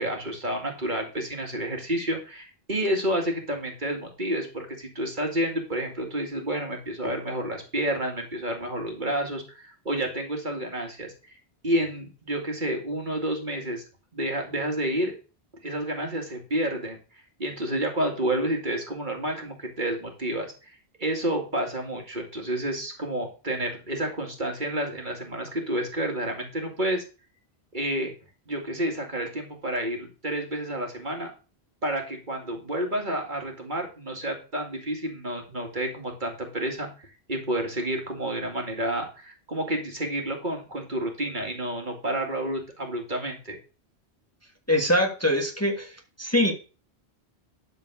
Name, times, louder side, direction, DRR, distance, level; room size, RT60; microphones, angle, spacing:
voice 1, 0.0-11.1 11.6-13.8 14.1-15.1 15.6-17.0 17.4-27.0 27.7-28.1 28.5-31.3 31.8-43.6, right 1 dB, 45° right, 2 dB, 2.4 m, -30 dB
voice 2, 44.7-45.9 46.2-46.5, left 1 dB, 15° left, 2 dB, 1.5 m, -23 dB
12.0 x 4.5 x 6.2 m, 0.34 s
omnidirectional pair, 1.1 m